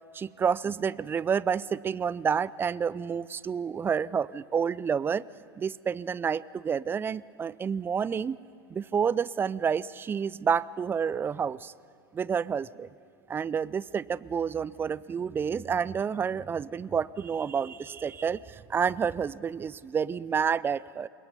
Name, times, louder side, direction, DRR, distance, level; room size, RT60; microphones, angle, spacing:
voice 1, 0.1-5.3 5.6-8.4 8.7-11.7 12.1-12.9 13.3-21.1, right 7 dB, 15° right, 21 dB, 0.4 m, -29 dB
25.5 x 22.0 x 5.6 m, 2.6 s
figure-of-eight pair, 85°, 13 cm